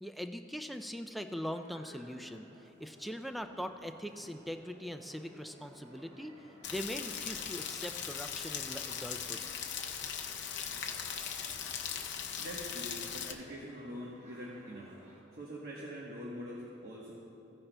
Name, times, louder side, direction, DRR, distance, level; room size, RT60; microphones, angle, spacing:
voice 1, 0.0-6.3 6.7-9.4, equal, ahead, 7 dB, 0.3 m, -41 dB
sound 1, 1.4-15.2, equal, 35° right, 1.6 m, -58 dB
Rain, 6.6-13.3, left 8 dB, 60° left, 0.6 m, -39 dB
voice 2, 12.4-14.9 15.3-17.1, equal, 55° right, -4 dB, 1.1 m, -44 dB
15.5 x 10.0 x 2.2 m, 2.7 s
head